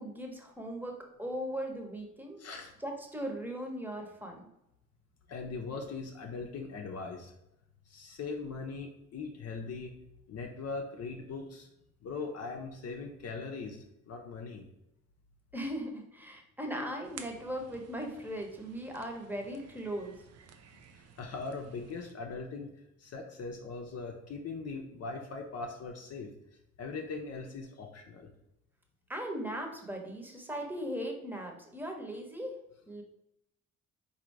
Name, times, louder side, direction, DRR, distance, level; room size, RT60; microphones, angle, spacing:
voice 1, 0.0-2.4 2.8-4.4 15.5-20.2 29.1-32.5 32.9-33.0, equal, 5° right, 2 dB, 1.0 m, -38 dB
voice 2, 2.4-2.7 5.3-7.3 7.9-9.9 10.3-11.7 12.0-14.7 20.9-22.7 23.0-26.3 26.8-28.3, left 4 dB, 55° left, 2 dB, 0.7 m, -40 dB
sound 1, 17.0-22.1, right 7 dB, 55° right, 0.5 m, -54 dB
3.9 x 2.8 x 4.6 m, 0.83 s
cardioid pair, 90°, 30 cm